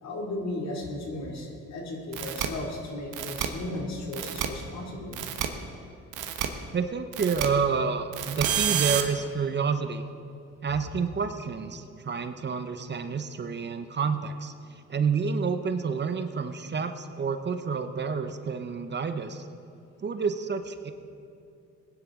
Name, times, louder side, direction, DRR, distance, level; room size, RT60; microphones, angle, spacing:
voice 1, 0.0-5.2, left 1 dB, 60° left, 0 dB, 2.5 m, -35 dB
sound 1, 2.1-2.5 3.1-3.5 4.1-4.5 5.1-5.5 6.1-6.5 7.1-7.5 8.1-9.0, right 10 dB, 85° right, 1.0 m, -28 dB
voice 2, 6.7-10.0 10.6-19.5 20.0-20.9, right 5 dB, 35° right, 9 dB, 0.8 m, -29 dB
19.5 x 10.5 x 3.7 m, 2.5 s
cardioid pair, 90°, 30 cm